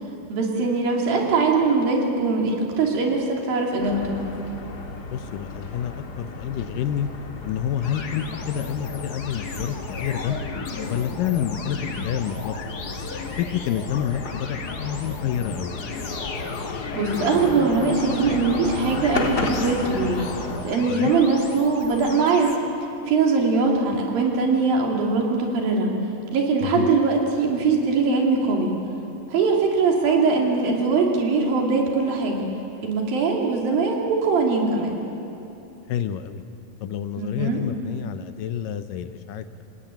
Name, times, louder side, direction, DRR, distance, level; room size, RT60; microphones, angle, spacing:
voice 1, 0.3-4.2 16.9-20.2 20.6-22.5 23.1-25.9 26.3-28.7 29.3-32.5 32.8-34.9 37.2-37.6, right 4 dB, 80° right, 0 dB, 4.6 m, -21 dB
sound 1, 3.8-20.6, left 3 dB, 40° left, 1.6 m, -34 dB
voice 2, 5.1-7.1 7.4-10.4 10.9-12.6 13.4-15.7 20.9-21.1 26.6-26.9 35.9-36.4 36.8-39.6, left 9 dB, 80° left, 11 dB, 2.4 m, -28 dB
sound 2, 7.8-22.6, left 4 dB, 55° left, 1.0 m, -35 dB
27.5 x 18.0 x 9.2 m, 2.8 s
omnidirectional pair, 4.1 m